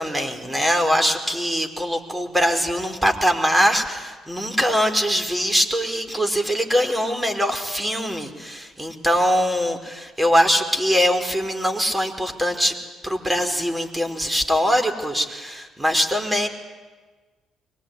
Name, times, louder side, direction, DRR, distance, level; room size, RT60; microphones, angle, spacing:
voice 1, 0.0-12.8 13.0-16.5, equal, 10° right, 6 dB, 4.8 m, -22 dB
23.5 x 23.0 x 9.8 m, 1.3 s
figure-of-eight pair, 45°, 0 cm